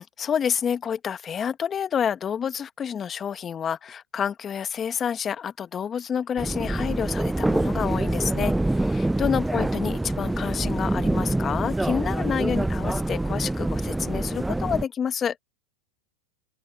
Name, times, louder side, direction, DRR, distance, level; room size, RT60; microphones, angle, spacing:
voice 1, 0.0-15.4, left 8 dB, 25° left, 1.3 m, -28 dB
sound 1, 6.4-14.8, right 1 dB, 5° right, 0.5 m, -25 dB
open air
hypercardioid pair, 115°, 0 cm